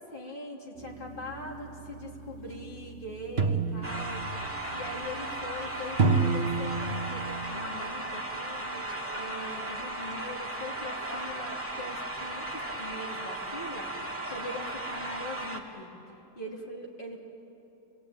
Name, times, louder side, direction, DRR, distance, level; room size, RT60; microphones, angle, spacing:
voice 1, 0.0-4.2 4.7-15.9 16.3-17.2, left 1 dB, 35° left, -1 dB, 3.1 m, -42 dB
Drum Gong and Chimes, 0.8-7.6, right 4 dB, 50° right, 1.3 m, -31 dB
sound 1, 3.8-15.6, right 2 dB, 10° right, 2.1 m, -36 dB
27.5 x 20.5 x 9.3 m, 3.0 s
omnidirectional pair, 1.5 m